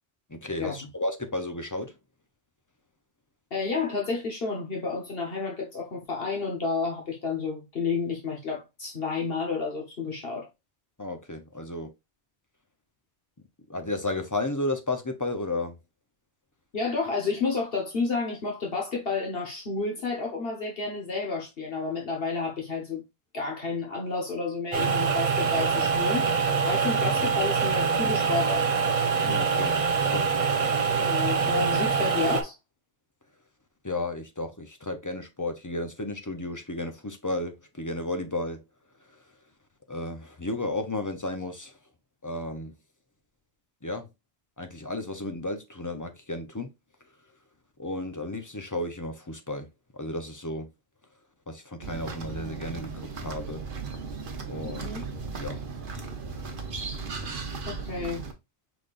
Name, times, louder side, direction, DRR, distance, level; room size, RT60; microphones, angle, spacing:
voice 1, 0.3-1.9 11.0-11.9 13.7-15.8 29.2-29.7 30.1-30.3 33.8-38.6 39.9-41.7 42.2-42.7 43.8-44.1 44.6-46.7 47.8-49.7 49.9-50.7 51.5-53.6 54.5-54.9 55.4-55.6, left 2 dB, 20° left, 0.6 m, -33 dB
voice 2, 3.5-10.5 16.7-23.0 23.3-26.3 26.6-28.7 31.0-32.5 54.6-55.0 57.7-58.2, left 4 dB, 60° left, 1.4 m, -30 dB
sound 1, 24.7-32.4, right 5 dB, 35° right, 0.7 m, -24 dB
sound 2, 51.8-58.3, right 4 dB, 55° right, 1.1 m, -36 dB
5.1 x 4.0 x 2.5 m
omnidirectional pair, 1.1 m